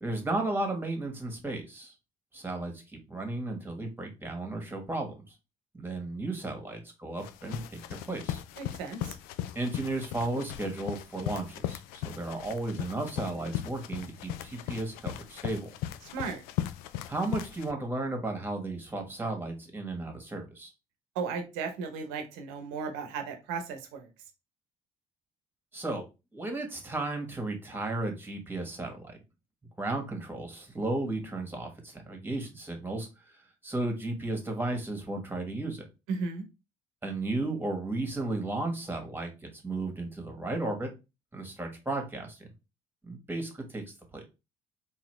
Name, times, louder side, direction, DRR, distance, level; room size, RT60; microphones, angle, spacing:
voice 1, 0.0-1.9 2.3-5.3 5.7-7.8 8.1-8.4 9.5-15.7 17.1-20.7 25.7-26.1 26.3-29.2 29.8-33.4 33.6-35.8 37.0-40.9 41.3-42.5 43.0-43.8 44.1-44.2, right 2 dB, 15° right, 3 dB, 1.6 m, -34 dB
sound 1, 7.2-17.7, left 12 dB, 80° left, 0.4 m, -38 dB
voice 2, 8.6-9.1 16.1-16.4 21.1-24.1 36.1-36.4, right 5 dB, 85° right, 6 dB, 0.9 m, -35 dB
3.9 x 2.8 x 3.2 m, 0.27 s
hypercardioid pair, 65°, 16 cm